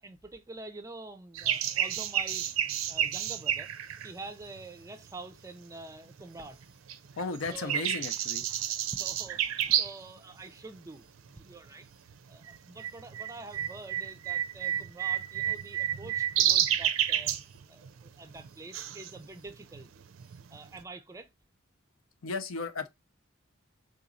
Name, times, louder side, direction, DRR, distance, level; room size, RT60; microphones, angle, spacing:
voice 1, 0.0-3.7 4.0-6.6 7.2-7.9 8.5-8.6 8.9-11.9 12.3-17.3 17.7-19.9 20.5-21.3, right 2 dB, 15° right, 0.4 m, -46 dB
Nachtigall Nightingale, 1.3-5.3 5.8-6.6 6.9-10.1 10.4-10.5 11.2-11.5 11.8-20.8, right 10 dB, 80° right, 0.4 m, -31 dB
voice 2, 7.2-8.4 22.2-22.9, left 4 dB, 80° left, 0.6 m, -35 dB
3.8 x 2.9 x 2.5 m
head